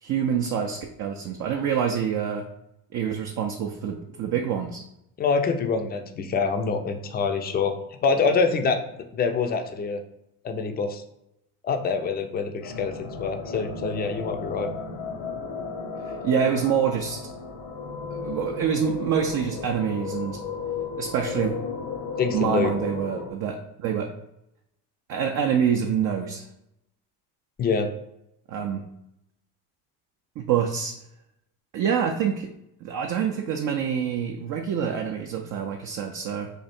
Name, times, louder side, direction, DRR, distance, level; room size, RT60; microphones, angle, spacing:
voice 1, 0.0-2.4 2.9-4.8 16.1-17.2 18.1-20.4 21.0-21.5 22.3-24.1 25.1-26.5 28.5-28.8 30.4-30.9 31.7-32.5 32.8-36.5, right 7 dB, 40° right, 2 dB, 0.5 m, -26 dB
voice 2, 5.2-8.8 9.1-10.0 10.4-11.0 11.6-14.7 22.2-22.7 27.6-27.9, left 5 dB, 20° left, 6 dB, 0.5 m, -25 dB
sound 1, 12.6-23.3, left 5 dB, 65° left, 0.8 m, -34 dB
3.3 x 2.4 x 4.3 m, 0.82 s
hypercardioid pair, 75°, 46 cm